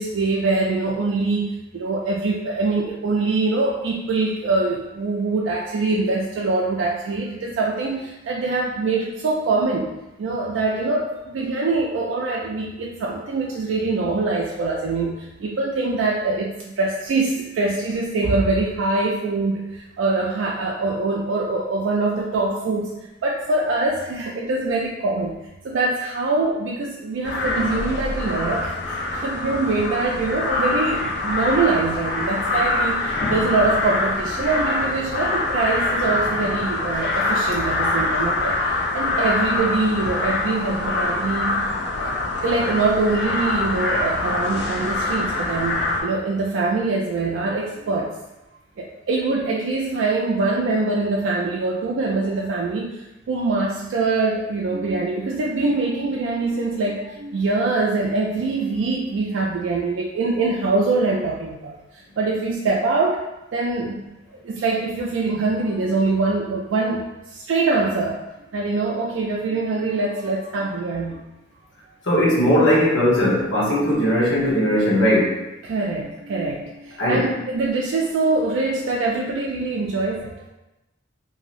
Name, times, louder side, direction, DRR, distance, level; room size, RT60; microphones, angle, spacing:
voice 1, 0.0-22.9 23.2-25.4 25.6-41.7 42.0-42.1 42.4-48.1 48.8-63.2 63.5-64.1 64.4-67.0 67.3-68.2 68.5-71.2 75.6-80.4, right 3 dB, 85° right, -3 dB, 0.3 m, -24 dB
sound 1, 27.2-46.0, left 2 dB, 60° left, 0.5 m, -24 dB
voice 2, 72.0-75.4 77.0-77.2, equal, 80° left, -4 dB, 0.9 m, -18 dB
3.0 x 2.6 x 2.5 m, 0.96 s
head